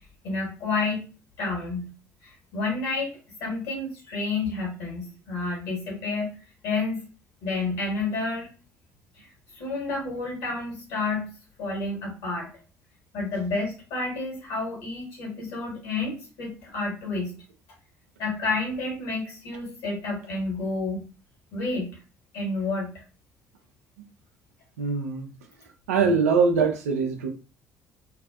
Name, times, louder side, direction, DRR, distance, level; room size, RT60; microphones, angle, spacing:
voice 1, 0.2-1.0 1.4-1.9 2.2-3.1 3.4-6.4 6.6-7.0 7.4-8.5 9.2-9.3 9.5-11.3 11.6-12.5 13.1-17.4 18.2-21.0 21.5-21.9 22.3-23.0, left 3 dB, 60° left, -2 dB, 1.4 m, -30 dB
voice 2, 24.8-25.3 25.9-27.3, right 5 dB, 75° right, 5 dB, 0.4 m, -22 dB
2.6 x 2.4 x 2.2 m, 0.33 s
figure-of-eight pair, 50°, 8 cm